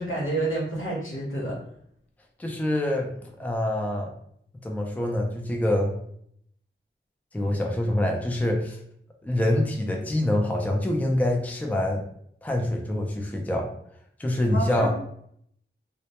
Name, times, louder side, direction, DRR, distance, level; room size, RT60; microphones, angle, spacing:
voice 1, 0.0-1.5 14.5-14.9, right 2 dB, 80° left, -4 dB, 0.9 m, -29 dB
voice 2, 2.4-3.1 3.4-4.1 4.6-5.9 7.3-8.8 9.2-12.0 12.4-13.7 14.2-14.9, left 1 dB, 10° left, 1 dB, 0.4 m, -25 dB
2.1 x 2.1 x 2.8 m, 0.68 s
wide cardioid pair, 55°, 20 cm